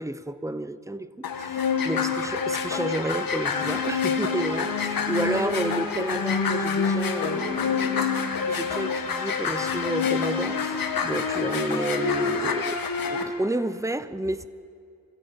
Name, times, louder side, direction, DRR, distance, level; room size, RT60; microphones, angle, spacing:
voice 1, 0.0-8.1 8.5-14.5, right 1 dB, 10° right, 0.7 m, -31 dB
sound 1, 1.2-13.2, left 5 dB, 85° left, 1.9 m, -27 dB
26.0 x 16.5 x 8.8 m
wide cardioid pair, 125°, 34 cm